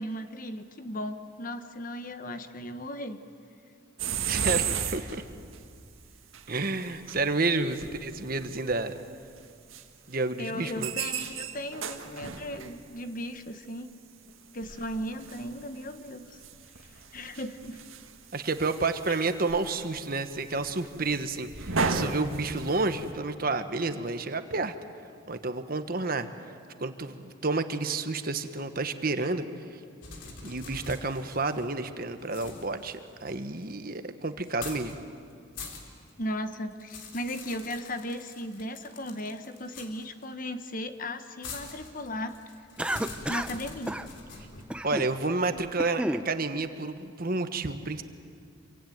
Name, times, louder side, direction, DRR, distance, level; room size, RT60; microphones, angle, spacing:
voice 1, 0.0-3.2 10.4-13.9 14.5-16.4 16.8-17.8 19.1-19.2 36.2-42.4 43.3-44.0, left 1 dB, 40° left, 9 dB, 1.2 m, -36 dB
sound 1, 4.0-5.6 6.3-6.4 6.8-7.3 7.6-8.8 9.4-9.5 9.7-9.8 10.5-12.8 14.3-14.4 14.6-15.9 16.3-23.1, right 5 dB, 80° right, 1.8 m, -34 dB
voice 2, 4.3-5.2 6.5-8.9 10.1-10.9 18.3-24.7 25.3-26.3 26.8-29.8 30.4-35.0 44.8-48.0, right 3 dB, 45° right, 9 dB, 1.3 m, -30 dB
sound 2, 30.0-31.8 32.2-33.7 34.4-35.0 35.3-36.1 36.5-40.2 41.4-44.6, left 3 dB, 65° left, 3.6 m, -44 dB
Cough, 42.8-43.6 43.9-44.1 44.7-45.1 45.6-46.3, right 1 dB, 5° right, 0.6 m, -31 dB
26.5 x 24.0 x 9.3 m, 2.3 s
head